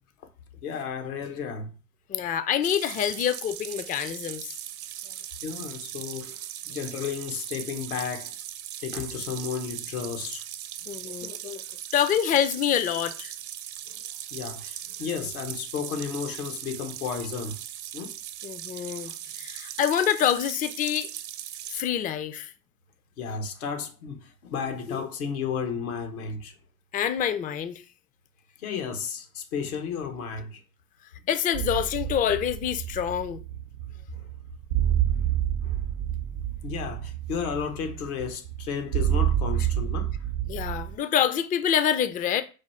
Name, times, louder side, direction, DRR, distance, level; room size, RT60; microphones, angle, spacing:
voice 1, 0.6-1.7 5.4-6.4 6.6-8.4 8.8-10.4 13.9-14.0 14.3-17.6 17.9-18.1 23.2-26.5 28.6-30.6 34.1-34.2 35.1-35.3 35.6-35.8 36.6-40.1, left 6 dB, 90° left, 1.0 m, -33 dB
voice 2, 2.1-4.5 10.9-11.6 11.9-13.3 18.4-21.1 21.7-22.5 24.9-25.1 26.9-27.8 31.3-33.4 40.5-42.4, left 9 dB, 20° left, 0.4 m, -26 dB
sound 1, 2.6-21.8, right 11 dB, 45° right, 0.6 m, -39 dB
sound 2, 31.5-41.0, right 11 dB, 80° right, 0.7 m, -28 dB
4.8 x 2.3 x 4.3 m
hypercardioid pair, 85°, 42 cm